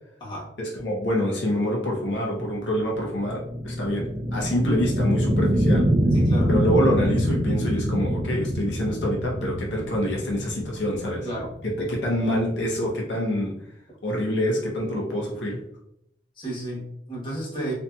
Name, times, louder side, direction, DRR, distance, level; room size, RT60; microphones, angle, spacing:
voice 1, 0.6-5.9 6.5-11.3 11.6-13.5 14.0-15.6, equal, 85° left, -2 dB, 0.6 m, -26 dB
sound 1, 2.2-12.9, equal, 35° right, 0.4 m, -25 dB
voice 2, 6.1-6.5 11.2-11.5 16.4-17.7, right 1 dB, 25° left, -7 dB, 1.0 m, -32 dB
2.7 x 2.6 x 2.2 m, 0.77 s
head